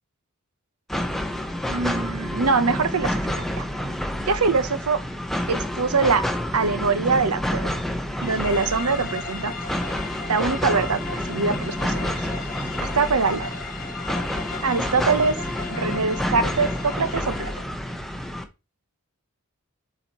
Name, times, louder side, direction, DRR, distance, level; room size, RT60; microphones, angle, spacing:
sound 1, 0.9-18.4, left 1 dB, ahead, 0.8 m, -29 dB
voice 1, 1.7-3.7 4.3-5.0 5.5-6.3 6.5-7.7 8.2-9.5 10.3-12.3 12.8-13.5 14.6-15.4 15.7-17.5, right 4 dB, 75° right, 0.8 m, -23 dB
sound 2, 8.2-17.7, left 6 dB, 40° left, 0.7 m, -37 dB
7.6 x 4.3 x 2.9 m
head